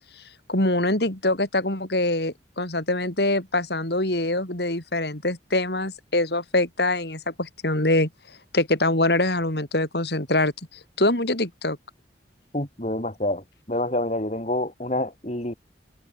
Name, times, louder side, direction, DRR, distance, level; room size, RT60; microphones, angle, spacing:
voice 1, 0.5-8.1 8.5-10.5 11.0-11.8, left 2 dB, 65° left, 4.2 m, -24 dB
voice 2, 12.5-15.5, left 1 dB, 40° left, 3.9 m, -27 dB
head